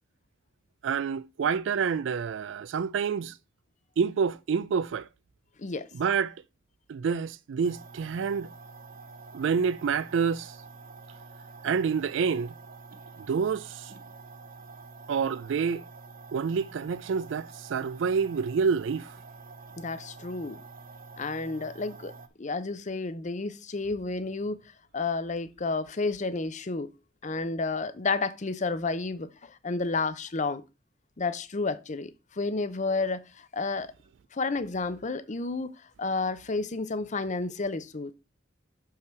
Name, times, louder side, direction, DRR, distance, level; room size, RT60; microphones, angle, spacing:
voice 1, 0.8-3.4 4.0-5.1 5.9-6.4 6.9-8.5 9.3-10.6 11.6-12.5 13.2-13.9 15.1-15.8 16.3-19.1, right 6 dB, 65° right, 0.3 m, -28 dB
sound 1, 7.6-22.3, right 4 dB, 45° right, 0.8 m, -47 dB
voice 2, 19.8-20.6 21.2-22.1 22.4-24.6 24.9-26.9 27.2-30.6 31.2-33.9 34.3-35.7 36.0-38.1, left 3 dB, 40° left, 0.7 m, -31 dB
6.6 x 5.7 x 4.5 m
head